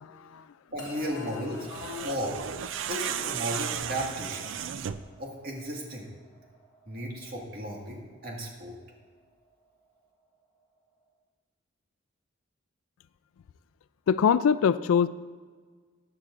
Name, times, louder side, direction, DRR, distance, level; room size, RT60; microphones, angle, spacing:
voice 1, 0.0-0.5 1.1-1.5 1.8-2.1 14.1-15.1, left 7 dB, 85° left, 16 dB, 0.3 m, -25 dB
voice 2, 0.7-1.7 2.0-2.4 2.9-4.6 5.2-6.1 6.9-8.8, equal, 50° right, -1 dB, 1.9 m, -35 dB
sound 1, 0.8-11.1, right 1 dB, 20° left, 2.4 m, -53 dB
sound 2, 1.5-5.2, right 9 dB, 65° right, 0.4 m, -34 dB
14.5 x 9.7 x 2.6 m, 1.5 s
head